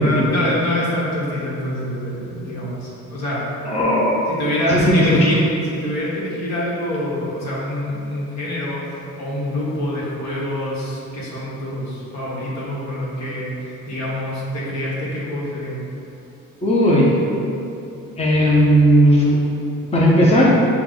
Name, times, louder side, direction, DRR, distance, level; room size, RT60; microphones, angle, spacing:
voice 1, 0.0-3.5 4.3-5.4 5.7-15.8, left 1 dB, 60° left, -6 dB, 1.4 m, -25 dB
voice 2, 3.6-4.2 4.7-5.3 16.6-17.1 18.2-19.4 19.9-20.5, equal, 20° left, -5 dB, 0.7 m, -15 dB
5.8 x 2.4 x 3.8 m, 2.7 s
cardioid pair, 90°, 30 cm